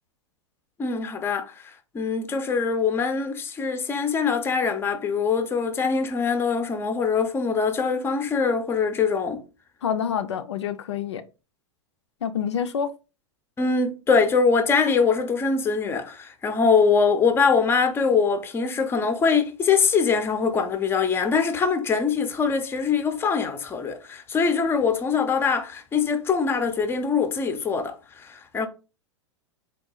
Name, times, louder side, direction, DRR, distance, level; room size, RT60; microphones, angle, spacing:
voice 1, 0.8-9.4 13.6-28.7, left 5 dB, 15° left, 0.5 m, -23 dB
voice 2, 9.8-11.2 12.2-13.0, left 8 dB, 70° left, 0.4 m, -27 dB
3.8 x 2.3 x 3.7 m
figure-of-eight pair, 95°, 15 cm